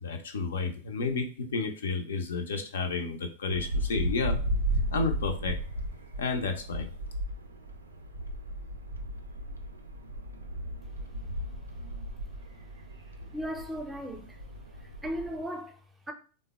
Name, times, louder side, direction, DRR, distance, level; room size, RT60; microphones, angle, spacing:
voice 1, 0.0-4.4 4.9-5.6 6.2-6.9, left 4 dB, 75° left, 0.4 m, -31 dB
sound 1, 3.5-15.4, equal, 90° right, 0.3 m, -35 dB
voice 2, 13.2-14.4 14.8-16.1, equal, 10° right, 0.5 m, -37 dB
3.2 x 2.0 x 2.2 m
hypercardioid pair, 95°, 0 cm